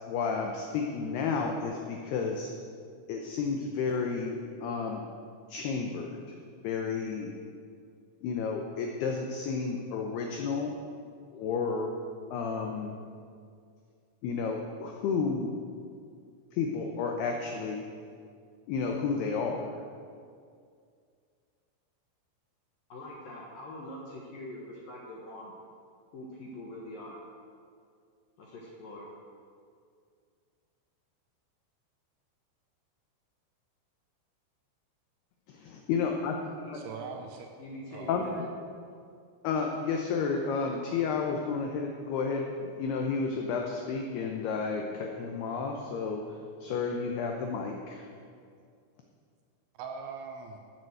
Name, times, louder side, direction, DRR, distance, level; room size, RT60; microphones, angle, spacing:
voice 1, 0.1-2.5 3.1-5.0 5.5-6.4 6.6-7.3 8.2-10.8 11.3-12.0 12.3-13.0 14.2-15.5 16.5-17.9 18.7-19.8 35.5-36.4 36.7-36.8 38.1-38.5 39.4-46.2 46.6-48.1, left 5 dB, 90° left, 2 dB, 2.2 m, -31 dB
voice 2, 22.9-25.6 26.1-27.2 28.4-29.1 36.2-36.8 37.6-38.5, left 1 dB, 65° left, -3 dB, 2.3 m, -43 dB
voice 3, 36.7-37.5 37.9-38.4 49.7-50.6, right 5 dB, 75° right, 4 dB, 2.8 m, -41 dB
13.0 x 8.0 x 7.8 m, 2.2 s
omnidirectional pair, 6.0 m